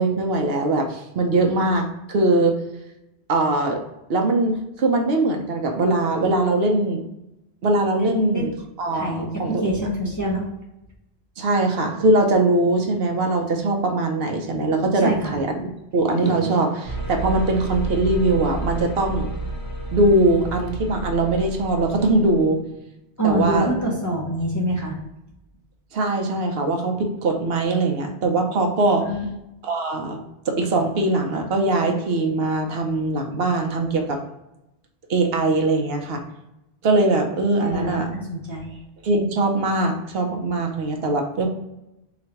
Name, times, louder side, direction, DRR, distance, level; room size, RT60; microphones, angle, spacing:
voice 1, 0.0-2.6 3.3-3.8 4.1-7.0 7.6-8.5 8.8-9.6 11.4-15.7 15.9-19.3 19.9-22.6 23.2-23.7 25.9-29.1 29.6-30.2 30.5-34.2 35.1-36.2 36.8-38.1 39.0-41.5, right 2 dB, 65° right, 3 dB, 0.8 m, -21 dB
voice 2, 8.0-8.5 8.9-10.4 14.9-15.3 23.2-25.0 29.0-29.2 37.6-38.8, right 1 dB, 20° left, -4 dB, 0.6 m, -25 dB
sound 1, 16.8-22.6, right 2 dB, 70° left, 1.8 m, -31 dB
3.9 x 2.5 x 4.4 m, 0.90 s
omnidirectional pair, 1.1 m